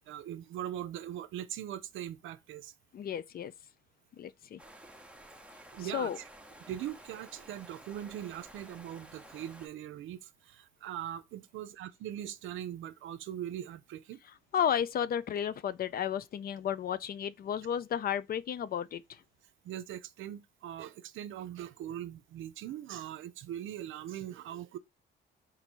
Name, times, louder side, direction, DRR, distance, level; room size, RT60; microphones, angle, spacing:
voice 1, 0.1-2.7 5.7-6.1 6.7-14.2 19.6-24.8, right 11 dB, 80° right, 0.6 m, -41 dB
voice 2, 2.9-3.5 4.2-4.6 5.8-6.2 14.5-19.0, left 9 dB, 50° left, 0.4 m, -33 dB
sound 1, 4.6-9.7, right 1 dB, 5° right, 0.8 m, -53 dB
4.0 x 2.7 x 4.4 m
cardioid pair, 90°, 20 cm